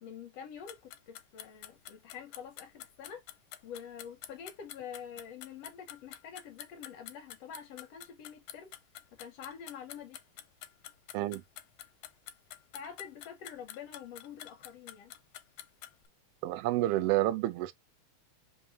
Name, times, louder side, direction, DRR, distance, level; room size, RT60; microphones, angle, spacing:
voice 1, 0.0-3.2 3.6-8.7 9.1-10.2 12.7-15.1, left 7 dB, 65° left, 1.9 m, -46 dB
sound 1, 0.7-16.1, left 12 dB, 85° left, 2.0 m, -48 dB
voice 2, 16.4-17.7, right 15 dB, 80° right, 1.4 m, -29 dB
5.4 x 2.7 x 3.0 m
omnidirectional pair, 3.3 m